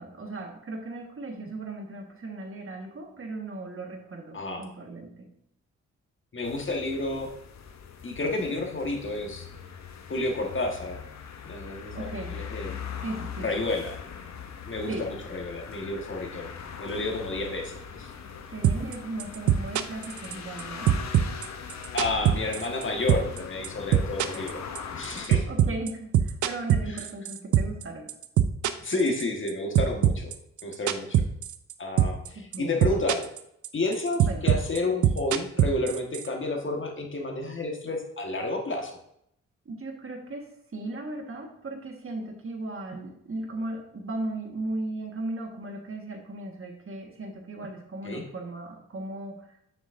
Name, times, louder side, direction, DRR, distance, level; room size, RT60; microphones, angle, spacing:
voice 1, 0.0-5.3 11.9-12.4 13.0-13.6 14.9-15.1 18.5-21.0 25.5-28.1 32.3-32.8 34.3-34.6 39.6-49.6, right 2 dB, 45° right, 3 dB, 1.6 m, -37 dB
voice 2, 4.3-4.6 6.3-7.3 8.0-9.5 10.1-11.0 11.4-12.7 13.4-14.0 14.6-16.5 16.8-18.1 21.9-24.6 24.9-25.5 28.8-30.3 30.6-31.3 31.8-33.3 33.7-39.0 48.0-48.2, left 2 dB, 40° left, 2 dB, 1.5 m, -30 dB
sound 1, 6.4-25.3, left 6 dB, 60° left, 0.8 m, -41 dB
sound 2, 18.6-18.9 19.2-20.6 20.9-22.8 23.1-23.4 23.6-27.8 28.1-29.5 29.7-31.7 32.0-32.3 32.5-33.4 33.6-36.3, right 10 dB, 70° right, 0.6 m, -22 dB
7.1 x 6.0 x 2.6 m, 0.75 s
supercardioid pair, 55°, 31 cm